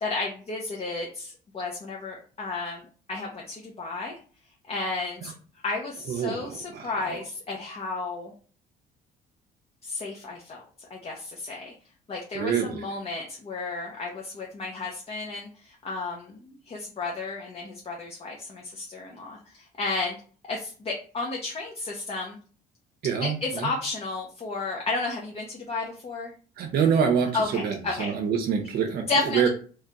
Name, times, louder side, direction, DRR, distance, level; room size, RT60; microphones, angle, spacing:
voice 1, 0.0-2.8 3.1-4.1 4.7-5.3 5.6-8.3 9.8-10.6 10.9-11.7 12.1-16.4 16.7-20.2 20.5-22.4 23.2-26.3 27.3-28.1 29.1-29.5, left 3 dB, 35° left, -2 dB, 0.8 m, -32 dB
voice 2, 6.1-7.2 12.3-12.9 23.0-23.7 26.6-29.5, right 7 dB, 65° right, 5 dB, 0.6 m, -26 dB
3.1 x 2.8 x 3.5 m, 0.40 s
cardioid pair, 110°, 17 cm